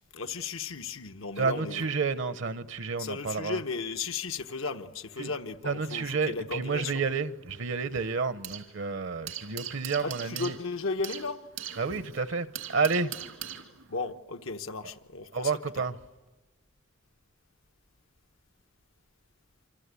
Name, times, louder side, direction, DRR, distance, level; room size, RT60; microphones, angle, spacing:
voice 1, 0.1-2.0 3.0-7.0 10.0-11.4 13.9-15.5 15.8-15.9, left 4 dB, 85° left, 1.2 m, -35 dB
voice 2, 1.4-3.6 5.2-5.3 5.6-10.5 11.8-13.2 15.3-15.9, right 4 dB, 65° right, 0.9 m, -30 dB
sound 1, 6.7-8.8 9.0-14.1, right 10 dB, 85° right, 2.3 m, -42 dB
27.0 x 26.0 x 8.3 m
head